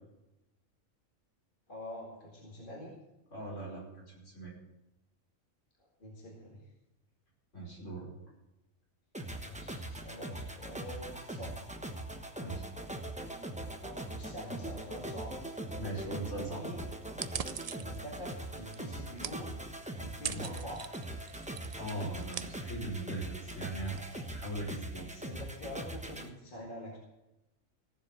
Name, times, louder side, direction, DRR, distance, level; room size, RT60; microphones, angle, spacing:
voice 1, 1.7-2.9 6.0-6.6 9.4-11.6 13.8-15.6 15.9-16.1 16.5-16.9 17.2-17.4 17.7-19.5 20.0-20.9 25.1-27.0, left 1 dB, 40° left, -2 dB, 2.4 m, -45 dB
voice 2, 3.3-3.9 4.1-4.5 7.5-8.1 12.4-12.7 15.8-16.7 20.2-20.4 21.8-25.1, right 2 dB, 65° left, -4 dB, 5.7 m, -40 dB
sound 1, 9.1-26.3, right 1 dB, 5° right, 1.0 m, -41 dB
sound 2, 17.2-24.8, right 7 dB, 80° right, 0.3 m, -45 dB
16.0 x 7.5 x 7.1 m, 0.94 s
omnidirectional pair, 1.4 m